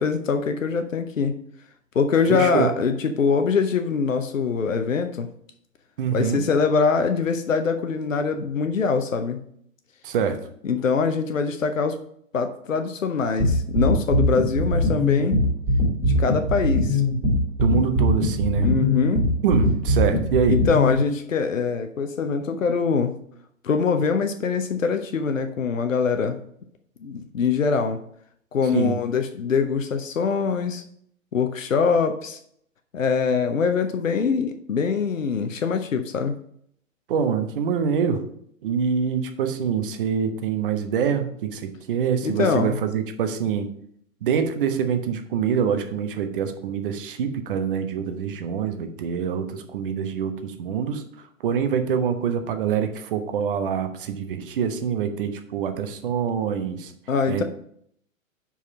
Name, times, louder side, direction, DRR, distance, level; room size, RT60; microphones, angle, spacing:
voice 1, 0.0-1.3 1.9-5.3 6.1-9.4 10.6-12.0 12.3-15.4 16.0-17.0 18.6-19.2 20.5-23.1 23.6-26.4 27.0-28.0 28.5-30.8 31.3-32.4 32.9-36.4 42.2-42.8 57.1-57.4, left 5 dB, 75° left, 7 dB, 0.7 m, -23 dB
voice 2, 2.3-2.7 6.0-6.4 10.0-10.4 17.6-18.7 19.4-20.6 28.7-29.0 37.1-38.2 38.6-43.7 44.2-51.0 51.4-56.9 57.3-57.4, right 7 dB, 40° right, 7 dB, 1.0 m, -25 dB
sound 1, 13.4-21.0, left 1 dB, 15° right, 1.9 m, -21 dB
5.7 x 4.7 x 6.0 m, 0.69 s
figure-of-eight pair, 115°, 40 cm